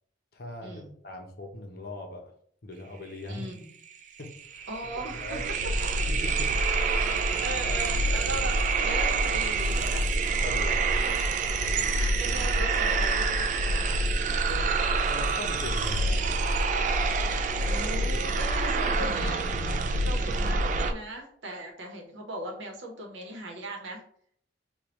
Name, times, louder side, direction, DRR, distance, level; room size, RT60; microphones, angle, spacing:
voice 1, 0.3-2.3 2.6-3.5 4.2-4.7 5.1-5.5 6.1-6.5 6.8-7.0 10.4-11.0 14.5-16.3, left 1 dB, 55° left, 3 dB, 0.7 m, -40 dB
voice 2, 3.3-3.7 4.7-5.4 6.8-10.1 11.0-11.2 11.9-14.0 17.6-24.0, right 1 dB, 80° right, 2 dB, 0.9 m, -38 dB
sound 1, 3.9-4.0 4.2-20.9, right 3 dB, 40° right, 0.3 m, -26 dB
4.9 x 2.3 x 3.0 m, 0.63 s
head